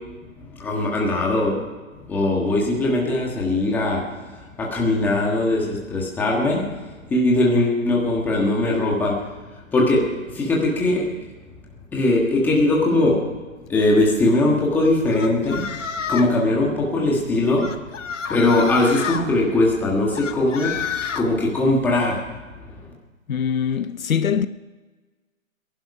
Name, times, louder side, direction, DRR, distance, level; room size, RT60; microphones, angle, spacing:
voice 1, 0.4-1.7 2.0-9.2 9.7-11.0 11.9-13.3 13.7-15.7 16.1-17.7 18.3-20.8 21.1-22.2 22.5-22.9, left 2 dB, 5° left, 1.5 m, -20 dB
sound 1, 15.1-16.4 17.6-19.2 20.2-21.3, left 7 dB, 65° left, 1.4 m, -29 dB
voice 2, 23.3-24.5, left 8 dB, 80° left, 0.9 m, -22 dB
19.5 x 11.5 x 5.5 m
hypercardioid pair, 160°, 40 cm